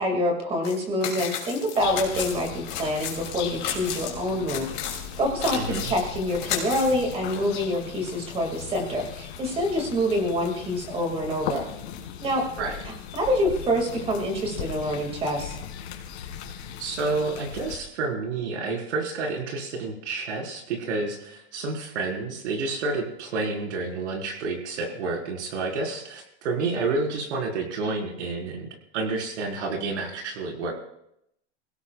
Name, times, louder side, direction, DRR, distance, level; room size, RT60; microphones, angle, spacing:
voice 1, 0.0-11.7 12.2-12.4 13.1-15.6, equal, 15° right, 3 dB, 2.3 m, -26 dB
sound 1, 0.6-0.8 1.0-4.1 4.5-7.6, left 9 dB, 30° left, 2.9 m, -33 dB
sound 2, 1.8-17.8, left 9 dB, 65° left, 2.5 m, -38 dB
voice 2, 5.5-5.9 12.6-12.8 16.8-28.7 28.9-30.7, right 3 dB, 75° right, 1 dB, 4.5 m, -29 dB
25.0 x 17.0 x 2.4 m, 0.77 s
supercardioid pair, 180°, 35 cm